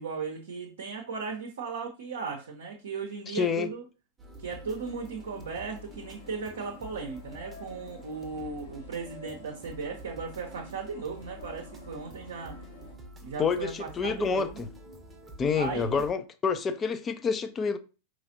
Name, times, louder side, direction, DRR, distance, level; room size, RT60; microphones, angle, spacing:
voice 1, 0.0-3.8 4.4-12.6 13.2-14.6 15.5-16.0, right 5 dB, 65° right, 0.7 m, -37 dB
voice 2, 3.3-3.7 13.4-14.7 15.4-17.8, left 5 dB, 20° left, 0.4 m, -28 dB
sound 1, 4.2-16.1, equal, 15° right, 0.8 m, -48 dB
sound 2, 4.6-12.9, left 3 dB, 65° left, 1.1 m, -51 dB
4.8 x 3.1 x 2.6 m
figure-of-eight pair, 90°, 0 cm